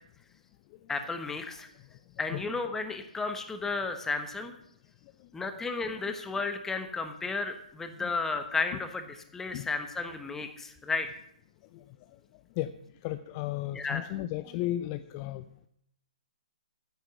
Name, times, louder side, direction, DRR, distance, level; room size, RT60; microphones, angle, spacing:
voice 1, 0.9-1.7 2.2-4.5 5.3-9.1 9.3-11.1 13.7-14.1, left 4 dB, 10° left, 8 dB, 1.1 m, -33 dB
voice 2, 13.0-15.4, left 14 dB, 30° left, 10 dB, 0.5 m, -34 dB
10.0 x 8.0 x 7.5 m, 0.72 s
hypercardioid pair, 135°, 4 cm